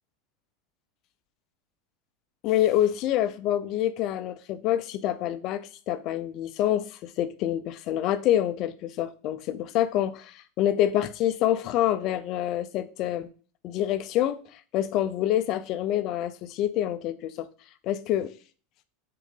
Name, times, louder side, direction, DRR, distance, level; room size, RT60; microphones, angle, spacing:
voice 1, 2.4-13.3 13.6-17.5 17.8-18.3, left 12 dB, 35° left, 0.5 m, -27 dB
7.2 x 3.8 x 5.5 m
supercardioid pair, 175°, 0 cm